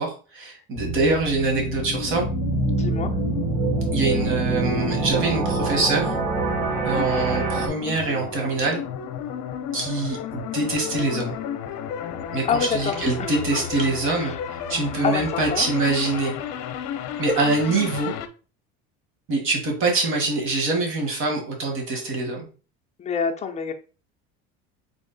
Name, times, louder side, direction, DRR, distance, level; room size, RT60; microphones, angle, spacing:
voice 1, 0.0-2.3 3.9-6.1 6.8-8.8 9.7-11.3 12.3-16.3 17.2-18.1 19.3-22.5, right 3 dB, 45° right, 2 dB, 1.7 m, -24 dB
sound 1, 0.8-7.7, right 3 dB, 60° right, 2.2 m, -25 dB
sound 2, 1.4-18.3, left 8 dB, 60° left, 0.7 m, -33 dB
voice 2, 2.7-3.1 12.5-12.9 13.2-13.9 14.2-14.4 15.0-15.7 23.0-23.7, left 6 dB, 25° left, 4 dB, 0.6 m, -27 dB
3.7 x 3.1 x 4.0 m, 0.36 s
cardioid pair, 145°, 29 cm